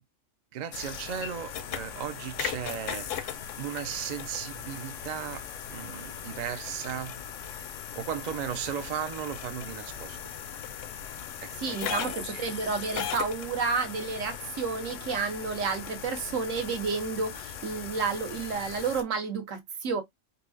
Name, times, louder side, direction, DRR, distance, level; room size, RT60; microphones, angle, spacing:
voice 1, 0.5-3.3 3.6-7.2 7.5-7.7 8.0-10.2 11.4-12.4, right 9 dB, 55° right, 0.5 m, -36 dB
sound 1, 0.7-19.0, left 8 dB, 75° left, 0.9 m, -38 dB
voice 2, 11.6-20.0, right 5 dB, 80° right, 1.3 m, -31 dB
4.0 x 2.3 x 2.5 m
omnidirectional pair, 1.3 m